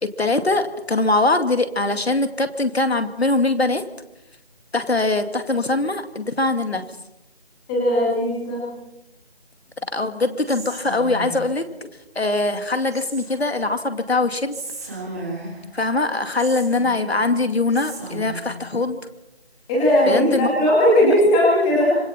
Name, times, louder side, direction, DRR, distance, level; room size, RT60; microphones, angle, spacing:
voice 1, 0.0-3.8 4.7-6.8 9.9-11.7 12.2-14.6 15.7-19.0 20.1-20.5, left 2 dB, 75° left, 8 dB, 2.5 m, -22 dB
voice 2, 7.7-8.6 19.7-22.0, left 1 dB, 5° left, -6 dB, 2.4 m, -17 dB
Whispering, 10.5-11.6 12.9-13.6 14.5-15.7 16.4-17.3 17.7-18.6, right 2 dB, 15° right, 3.7 m, -35 dB
26.0 x 24.5 x 4.4 m, 0.86 s
figure-of-eight pair, 175°, 32 cm